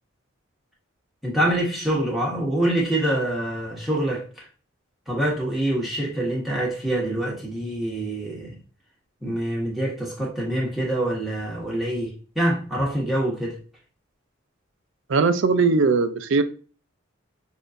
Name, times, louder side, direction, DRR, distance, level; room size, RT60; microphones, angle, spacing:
voice 1, 1.2-4.4 5.1-8.6 9.2-13.6, right 1 dB, ahead, 1.4 m, -25 dB
voice 2, 15.1-16.4, right 4 dB, 65° right, 0.4 m, -19 dB
6.3 x 2.7 x 2.5 m
head